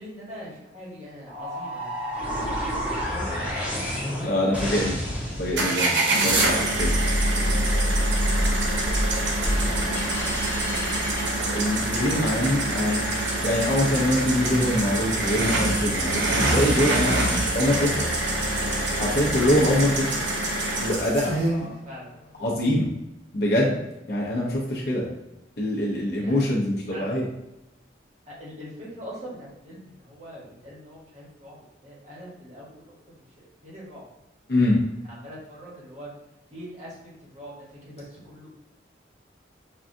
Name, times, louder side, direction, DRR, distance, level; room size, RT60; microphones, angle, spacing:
voice 1, 0.0-1.9 2.4-4.4 7.7-8.5 9.0-12.5 21.4-22.1 26.1-26.6 26.9-27.2 28.3-34.0 35.2-36.1 36.5-38.5, equal, 40° right, -6 dB, 1.2 m, -43 dB
sound 1, 1.3-5.8, equal, 5° right, 0.9 m, -30 dB
voice 2, 4.2-5.0 5.4-6.9 11.5-13.0 13.4-17.2 17.5-18.1 18.9-20.2 20.8-21.7 22.4-22.9 23.3-23.8 24.1-25.1 25.6-27.3 34.5-34.8, left 1 dB, 55° left, -4 dB, 0.8 m, -24 dB
sound 2, 5.6-21.5, right 1 dB, 75° right, 0.8 m, -25 dB
sound 3, 6.7-12.0, equal, 10° left, 0.4 m, -27 dB
5.4 x 2.4 x 2.6 m, 0.90 s
head